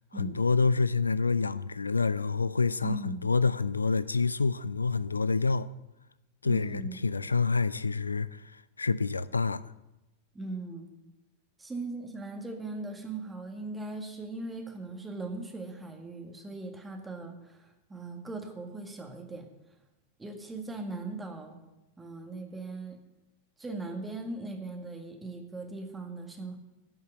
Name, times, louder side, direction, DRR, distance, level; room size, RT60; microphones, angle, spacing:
voice 1, 0.1-5.7 6.4-9.6, left 4 dB, 80° left, 0.3 m, -27 dB
voice 2, 2.8-3.3 6.4-7.0 10.3-10.9 11.6-19.5 20.2-21.6 22.0-23.0 23.6-26.6, right 2 dB, 10° right, 1.8 m, -39 dB
10.5 x 5.6 x 7.7 m
figure-of-eight pair, 90°, 0 cm